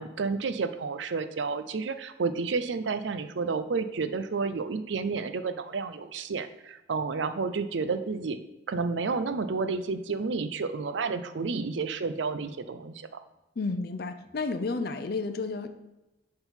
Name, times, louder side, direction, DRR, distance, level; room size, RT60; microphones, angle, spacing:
voice 1, 0.0-8.4 8.7-13.2, right 4 dB, 80° right, 10 dB, 0.5 m, -31 dB
voice 2, 13.6-15.7, left 3 dB, 55° left, 9 dB, 0.5 m, -31 dB
7.0 x 3.8 x 5.7 m, 0.99 s
head